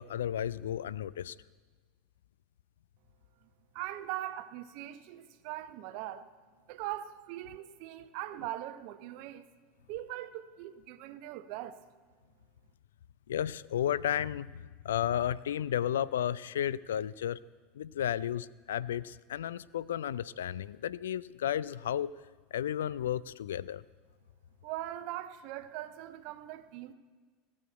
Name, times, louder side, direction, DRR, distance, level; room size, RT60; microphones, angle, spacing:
voice 1, 0.0-1.3 13.3-14.5 14.8-17.4 17.8-22.1 22.5-23.8, left 10 dB, 70° left, 0.3 m, -33 dB
voice 2, 3.7-6.3 6.7-9.4 9.9-11.8 24.6-26.9, right 13 dB, 55° right, 0.7 m, -41 dB
16.0 x 6.4 x 7.8 m
figure-of-eight pair, 75°, 0 cm